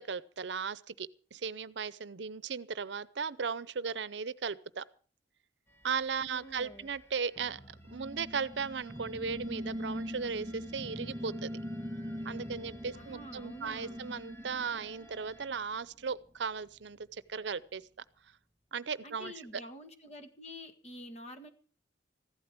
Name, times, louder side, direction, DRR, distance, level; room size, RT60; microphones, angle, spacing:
voice 1, 0.0-4.8 5.8-7.6 7.9-11.5 12.2-17.8 18.7-19.6, right 5 dB, 75° right, 0.7 m, -37 dB
sound 1, 5.7-15.5, right 1 dB, 15° left, 1.3 m, -58 dB
voice 2, 6.3-6.9 12.9-14.0 19.0-21.5, equal, 40° left, 1.8 m, -48 dB
sound 2, 7.9-15.6, equal, 10° right, 0.7 m, -42 dB
15.0 x 12.5 x 6.0 m
head